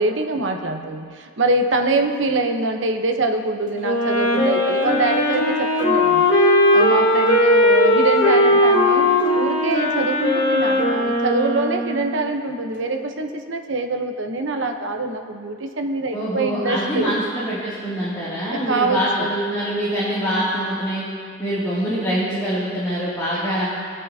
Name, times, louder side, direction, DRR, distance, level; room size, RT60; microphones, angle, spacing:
voice 1, 0.0-6.4 6.7-17.2 18.5-19.3, right 2 dB, 80° right, 4 dB, 0.9 m, -24 dB
Wind instrument woodwind instrument, 3.8-12.2, left 1 dB, 75° left, 2.7 m, -18 dB
voice 2, 16.1-21.0 21.4-23.7, equal, 20° left, -12 dB, 2.5 m, -24 dB
24.0 x 8.1 x 2.8 m, 2.2 s
head